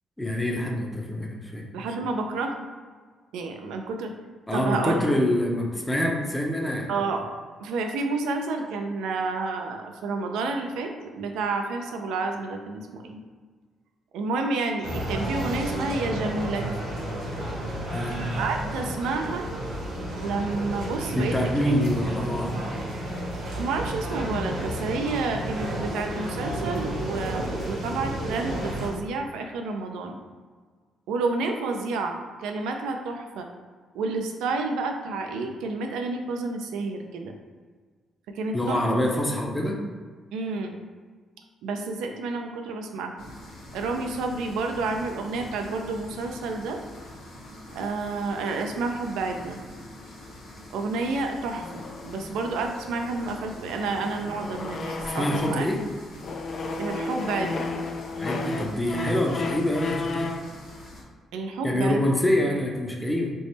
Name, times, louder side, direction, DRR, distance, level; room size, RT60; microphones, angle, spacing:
voice 1, 0.2-1.7 4.5-6.9 17.9-18.3 21.1-22.5 38.5-39.9 55.0-55.8 58.2-60.3 61.6-63.3, left 1 dB, 10° left, -1 dB, 0.6 m, -26 dB
voice 2, 1.7-2.7 3.3-4.1 4.5-5.0 6.9-7.3 7.6-13.2 14.1-16.9 18.4-19.5 20.2-21.8 23.5-30.2 31.1-33.5 33.9-37.3 38.3-38.8 40.3-40.8 41.6-43.3 43.7-46.8 47.8-49.6 50.7-55.7 56.8-57.7 61.3-62.1, right 3 dB, 90° right, 4 dB, 0.4 m, -30 dB
sound 1, 14.8-28.9, right 1 dB, 75° right, 1.0 m, -31 dB
sound 2, 43.2-61.0, left 1 dB, 80° left, 1.0 m, -45 dB
sound 3, 51.6-55.8 56.2-60.5, left 3 dB, 55° left, 0.4 m, -34 dB
3.4 x 2.0 x 4.0 m, 1.5 s
cardioid pair, 90°, 0 cm